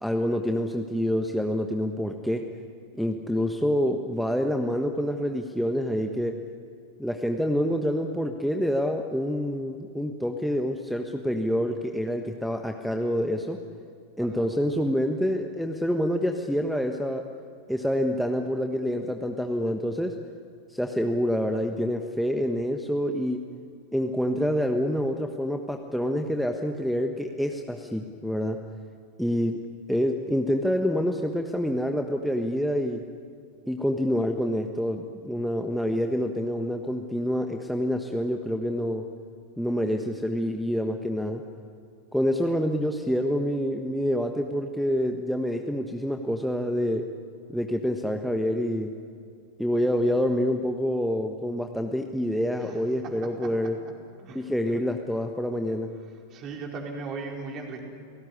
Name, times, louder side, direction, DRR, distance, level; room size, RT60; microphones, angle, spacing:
voice 1, 0.0-2.4 2.9-6.4 7.0-13.6 14.2-17.3 17.7-20.1 20.7-23.4 23.9-28.6 29.2-29.5 29.9-33.0 33.7-39.0 39.6-41.4 42.1-47.0 47.5-48.9 49.6-53.8 54.3-55.9, equal, ahead, 4 dB, 1.3 m, -27 dB
voice 2, 54.2-54.8 56.3-57.8, right 4 dB, 35° right, 1 dB, 4.7 m, -38 dB
29.0 x 18.5 x 9.9 m, 2.4 s
figure-of-eight pair, 90°, 0 cm